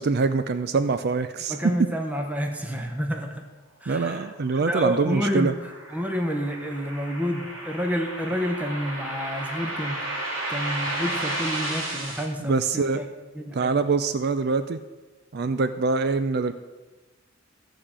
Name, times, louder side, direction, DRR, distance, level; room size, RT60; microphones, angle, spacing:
voice 1, 0.0-1.5 3.9-5.5 12.4-13.0 13.5-14.8 15.3-16.5, right 4 dB, 55° right, 11 dB, 0.5 m, -24 dB
voice 2, 1.5-3.5 3.8-13.1 13.3-13.8, equal, 5° right, 3 dB, 0.9 m, -29 dB
sound 1, 4.5-12.2, right 1 dB, 85° right, 3.2 m, -33 dB
14.5 x 5.1 x 7.3 m, 1.2 s
head